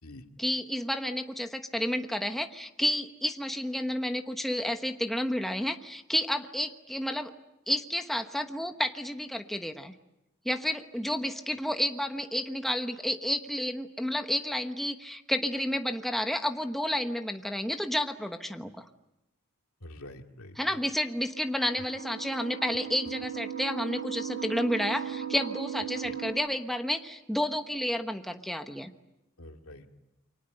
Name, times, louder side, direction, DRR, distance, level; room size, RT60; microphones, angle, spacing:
voice 1, 0.4-7.3 7.7-9.9 10.4-18.8 20.6-28.9, left 1 dB, ahead, 6 dB, 1.1 m, -31 dB
voice 2, 19.8-20.6 26.0-26.1 29.4-29.9, left 1 dB, 85° left, 4 dB, 2.3 m, -46 dB
sound 1, 21.1-26.3, right 9 dB, 45° right, 4.5 m, -37 dB
29.0 x 24.5 x 7.9 m, 0.90 s
head